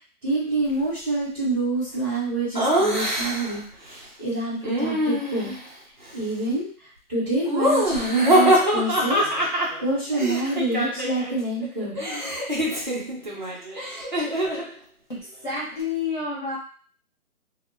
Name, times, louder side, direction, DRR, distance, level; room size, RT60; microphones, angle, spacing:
voice 1, 0.2-5.5 6.1-6.7 7.1-9.5 9.8-12.0, right 2 dB, 5° right, -14 dB, 0.8 m, -27 dB
Laughter, 2.5-3.6 4.6-5.7 7.4-11.3 11.6-14.7, equal, 35° right, 0.4 m, -24 dB
voice 2, 15.1-16.6, left 4 dB, 35° left, -8 dB, 0.4 m, -29 dB
2.1 x 2.1 x 3.1 m, 0.43 s
figure-of-eight pair, 150°, 44 cm